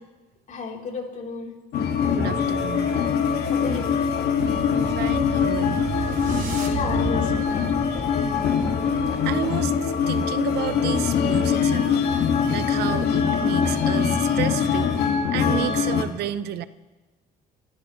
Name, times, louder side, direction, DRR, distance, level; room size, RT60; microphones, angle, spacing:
voice 1, 0.5-1.5 3.5-3.9 6.7-7.6, left 5 dB, 50° left, -1 dB, 3.6 m, -32 dB
sound 1, 1.7-16.0, left 7 dB, 75° left, 1.8 m, -23 dB
voice 2, 2.2-3.0 5.0-5.9 8.8-12.1 12.5-14.9 15.3-16.7, right 12 dB, 75° right, 14 dB, 0.7 m, -31 dB
sound 2, 3.8-9.4, right 5 dB, 55° right, 2.6 m, -34 dB
28.5 x 14.0 x 3.1 m, 1.2 s
cardioid pair, 110°, 17 cm